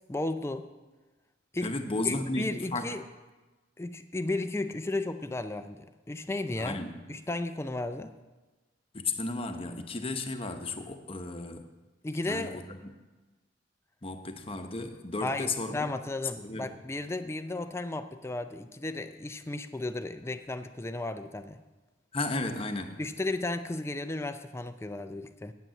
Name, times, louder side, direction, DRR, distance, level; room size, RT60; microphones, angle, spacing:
voice 1, 0.1-0.7 1.5-1.7 2.0-3.0 3.8-6.8 7.1-8.1 12.0-12.6 15.2-21.6 23.0-25.5, left 2 dB, 15° left, 10 dB, 0.4 m, -34 dB
voice 2, 1.6-3.0 6.6-7.0 8.9-11.6 12.3-12.9 14.0-15.8 16.4-16.7 22.1-23.0, left 3 dB, 30° left, 6 dB, 0.9 m, -34 dB
9.2 x 9.1 x 7.6 m, 1.2 s
head